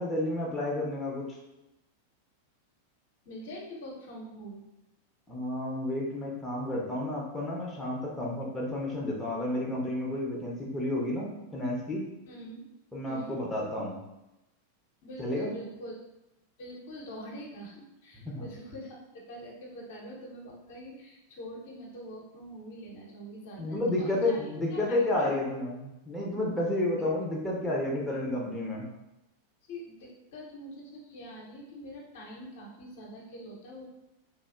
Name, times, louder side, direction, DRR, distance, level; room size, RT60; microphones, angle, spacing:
voice 1, 0.0-1.4 5.3-12.1 12.9-14.0 15.2-15.5 18.3-18.4 23.6-28.9, left 1 dB, 10° left, -4 dB, 0.5 m, -31 dB
voice 2, 3.3-4.6 12.3-12.6 13.0-13.3 15.0-15.9 16.6-25.3 28.1-28.2 29.6-33.9, equal, 55° left, -2 dB, 0.6 m, -44 dB
2.8 x 2.3 x 2.2 m, 0.95 s
figure-of-eight pair, 90°, 0 cm